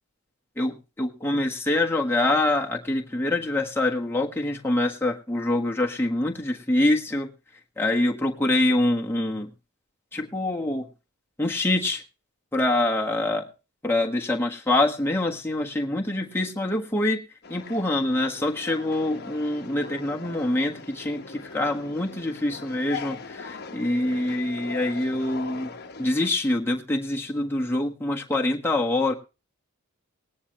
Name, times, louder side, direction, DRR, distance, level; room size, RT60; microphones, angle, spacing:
voice 1, 0.6-7.3 7.8-9.5 10.1-10.8 11.4-12.0 12.5-13.5 13.8-17.2 17.5-25.7 26.0-29.1, left 1 dB, 10° left, 0 dB, 1.5 m, -25 dB
sound 1, 17.4-26.3, left 4 dB, 45° left, 1.2 m, -40 dB
19.0 x 9.9 x 3.2 m, 0.30 s
head